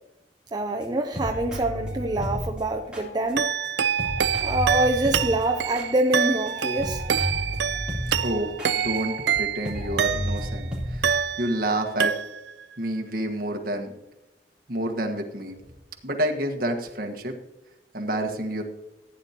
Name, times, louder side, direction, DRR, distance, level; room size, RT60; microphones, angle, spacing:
voice 1, 0.5-3.5 4.4-7.0, right 1 dB, 25° right, 2 dB, 0.6 m, -25 dB
sound 1, 0.8-0.9 1.1-3.7 4.0-9.3 9.6-11.2, equal, 5° right, 3.6 m, -33 dB
sound 2, 3.4-10.6 11.0-11.7 12.0-12.6, right 8 dB, 75° right, 0.5 m, -26 dB
voice 2, 8.0-8.5 8.8-12.1 12.8-13.9 14.7-15.5 16.0-17.4 17.9-18.6, right 1 dB, 55° right, 3 dB, 1.5 m, -29 dB
15.5 x 9.7 x 2.9 m, 0.94 s
head